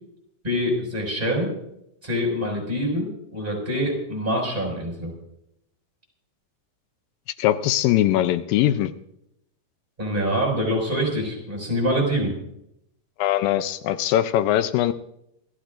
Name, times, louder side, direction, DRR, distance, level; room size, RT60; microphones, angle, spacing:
voice 1, 0.4-1.6 2.0-5.1 10.0-12.4, equal, 15° right, 0 dB, 5.8 m, -25 dB
voice 2, 7.4-8.9 13.2-14.9, left 13 dB, 85° left, 11 dB, 2.4 m, -21 dB
28.0 x 14.5 x 2.5 m, 0.78 s
omnidirectional pair, 4.0 m